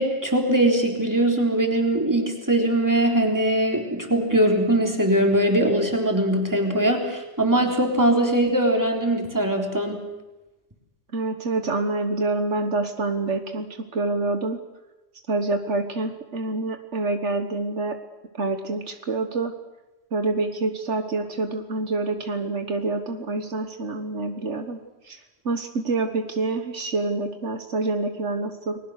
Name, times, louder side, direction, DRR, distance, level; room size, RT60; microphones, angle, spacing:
voice 1, 0.0-10.0, right 1 dB, 15° right, 2 dB, 3.8 m, -21 dB
voice 2, 11.1-14.6 15.3-18.0 18.4-19.5 20.1-24.8 25.1-25.2 25.5-28.8, right 3 dB, 75° right, 7 dB, 1.8 m, -27 dB
30.0 x 21.0 x 6.6 m, 1.0 s
omnidirectional pair, 1.2 m